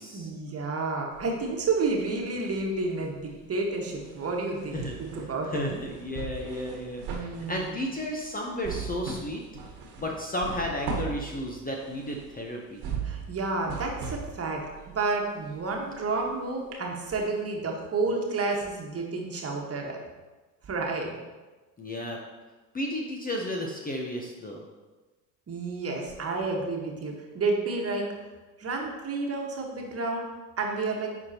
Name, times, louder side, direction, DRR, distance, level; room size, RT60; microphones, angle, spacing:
voice 1, 0.1-5.6 7.1-7.7 13.0-20.0 20.6-21.1 25.5-28.1 28.6-30.3 30.6-31.1, right 3 dB, 30° right, 0 dB, 1.5 m, -30 dB
sound 1, 1.1-2.2 2.5-16.3 16.7-16.8, right 5 dB, 50° right, 1.6 m, -39 dB
voice 2, 5.4-7.1 7.5-9.4 10.0-12.8 21.8-22.2 22.7-24.6, left 1 dB, 15° left, 0 dB, 0.9 m, -33 dB
10.5 x 4.3 x 2.9 m, 1.2 s
hypercardioid pair, 70°, 50 cm